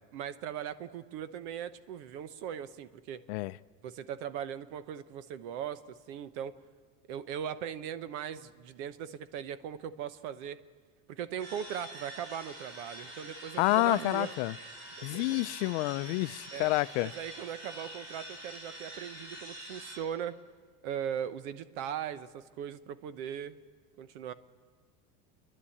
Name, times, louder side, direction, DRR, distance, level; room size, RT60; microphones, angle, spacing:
voice 1, 0.1-3.2 3.8-6.6 7.1-10.6 11.1-14.3 14.9-15.4 16.5-16.7 17.0-20.4 20.8-23.6 24.0-24.3, right 9 dB, 65° right, 13 dB, 1.0 m, -39 dB
sound 1, 11.4-20.0, right 1 dB, 45° right, 6.7 m, -46 dB
voice 2, 13.6-14.5 15.0-17.1, left 20 dB, 65° left, 15 dB, 0.6 m, -28 dB
29.0 x 11.0 x 8.5 m, 1.6 s
cardioid pair, 165°, 37 cm